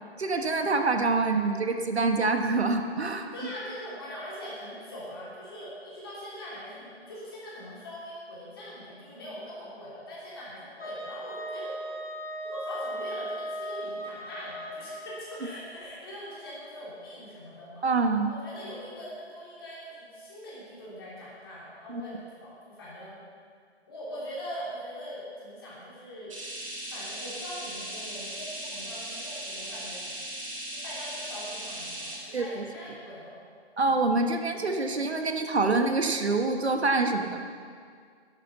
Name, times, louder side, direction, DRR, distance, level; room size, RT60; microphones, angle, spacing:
voice 1, 0.2-3.3 17.8-18.3 21.9-22.0 32.3-32.7 33.8-37.4, right 3 dB, 70° right, 5 dB, 1.4 m, -26 dB
voice 2, 3.3-11.7 12.5-14.9 15.3-17.9 18.2-22.1 22.4-23.2 23.9-26.3 26.9-30.0 30.8-33.4 33.8-34.1, equal, 20° left, -8 dB, 3.3 m, -42 dB
Wind instrument woodwind instrument, 10.8-15.5, right 1 dB, 60° left, 4.2 m, -37 dB
sound 1, 26.3-32.2, right 1 dB, 30° right, 2.4 m, -38 dB
12.5 x 11.0 x 5.9 m, 2.1 s
hypercardioid pair, 175°, 33 cm